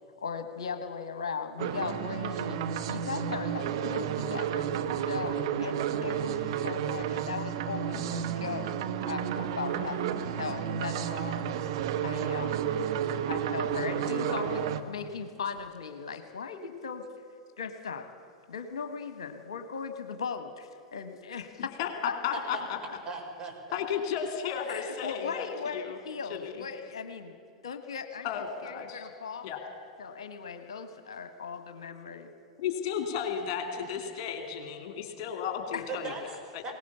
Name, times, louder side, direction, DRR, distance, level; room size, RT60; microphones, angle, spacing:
voice 1, 0.2-2.6 2.9-4.7 5.1-10.1 10.4-11.5 12.0-12.7 13.3-17.0 17.6-18.1 18.5-21.7 22.1-22.4 24.7-27.3 27.6-28.3 28.6-29.5 30.0-32.3 35.7-35.8, left 5 dB, 70° left, 8 dB, 1.4 m, -38 dB
sound 1, 1.6-14.8, right 8 dB, 60° right, 1.1 m, -31 dB
voice 2, 14.2-14.7 22.3-22.6 23.1-23.8 35.9-36.7, right 4 dB, 25° right, 0 dB, 5.4 m, -39 dB
voice 3, 22.2-22.6 23.7-26.0 26.3-26.5 28.2-29.1 29.4-29.6 32.6-36.1 36.5-36.7, left 7 dB, 50° left, 5 dB, 2.8 m, -34 dB
21.5 x 18.5 x 7.0 m, 2.4 s
figure-of-eight pair, 90°, 3 cm